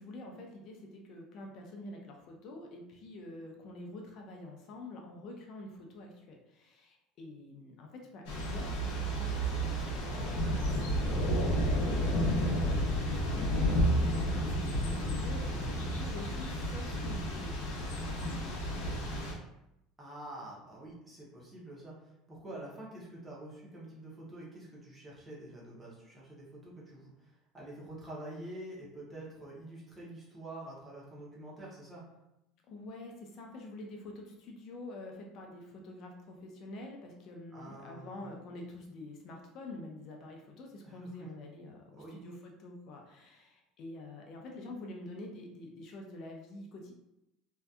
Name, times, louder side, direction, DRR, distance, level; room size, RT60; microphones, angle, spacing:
voice 1, 0.0-19.0 32.7-46.9, left 2 dB, 40° left, 1 dB, 0.4 m, -47 dB
Thunder / Rain, 8.3-19.3, equal, 80° left, 0.6 m, -31 dB
voice 2, 20.0-32.0 37.5-38.4 40.8-41.3 41.9-42.2, right 1 dB, 10° right, -5 dB, 0.6 m, -47 dB
2.6 x 2.2 x 2.3 m, 0.87 s
cardioid pair, 175°, 0 cm